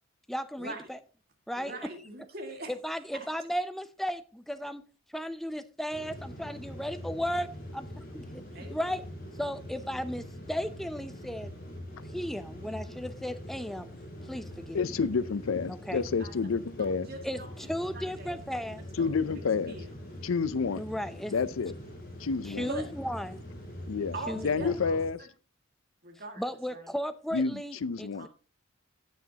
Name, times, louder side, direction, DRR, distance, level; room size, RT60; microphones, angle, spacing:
voice 1, 0.3-1.0 1.5-1.7 2.7-4.8 5.1-9.0 9.4-11.5 12.0-13.9 14.2-15.0 15.7-16.0 17.2-18.8 20.7-21.3 22.4-23.4 24.3-24.7 26.4-28.3, equal, ahead, 0.5 m, -35 dB
voice 2, 1.6-2.7 8.5-8.8 16.2-16.3 16.8-17.5 17.9-18.3 19.0-19.1 19.7-19.8 22.7-22.9 24.1-25.3 26.0-26.4 26.7-26.8 28.2-28.3, right 2 dB, 45° right, 2.0 m, -41 dB
sound 1, 5.9-25.1, equal, 45° left, 5.7 m, -43 dB
voice 3, 14.7-17.1 19.0-19.8 20.2-20.8 21.3-21.7 22.2-22.7 23.9-25.2 27.3-28.3, left 5 dB, 70° left, 0.5 m, -29 dB
17.5 x 6.1 x 2.9 m
head